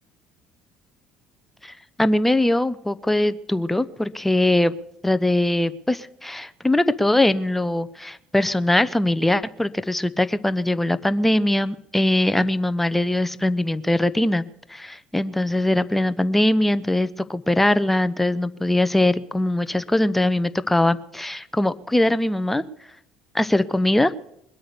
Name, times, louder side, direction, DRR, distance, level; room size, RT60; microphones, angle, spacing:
voice 1, 1.6-4.7 5.0-14.4 14.7-22.6 23.3-24.1, left 1 dB, 5° left, 13 dB, 0.8 m, -21 dB
21.0 x 8.7 x 6.9 m, 0.80 s
hypercardioid pair, 65°, 3 cm